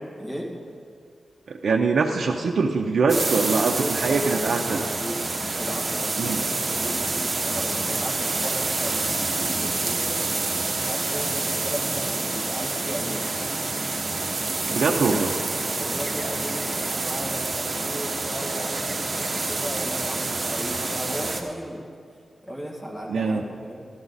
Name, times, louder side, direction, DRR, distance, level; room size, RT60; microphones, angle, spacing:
voice 1, 0.2-0.6 3.1-5.2 5.5-10.2 10.5-13.3 14.4-15.2 15.5-21.9 22.4-23.8, equal, 20° left, -3 dB, 2.2 m, -36 dB
voice 2, 1.5-4.8 6.2-6.4 14.7-15.3 23.1-23.4, right 4 dB, 75° right, 1 dB, 0.6 m, -23 dB
sound 1, 3.1-21.4, right 3 dB, 40° right, 1.1 m, -27 dB
13.0 x 12.5 x 4.0 m, 2.3 s
wide cardioid pair, 105°, 0 cm